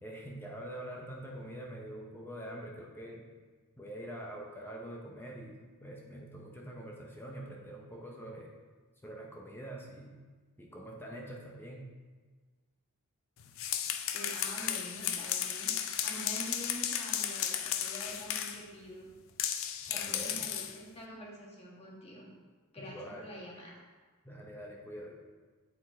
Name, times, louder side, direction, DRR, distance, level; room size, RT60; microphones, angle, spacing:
voice 1, 0.0-3.3 3.8-8.5 9.0-10.2 10.6-11.9 19.9-20.5 22.8-23.3 24.2-25.2, right 1 dB, 10° left, -1 dB, 0.6 m, -45 dB
sound 1, 13.4-18.6 19.4-20.8, left 9 dB, 60° left, 0.5 m, -34 dB
voice 2, 14.1-15.7 16.0-19.1 19.9-22.3 22.7-23.8, equal, 25° left, -3 dB, 1.5 m, -46 dB
7.9 x 4.4 x 4.2 m, 1.4 s
head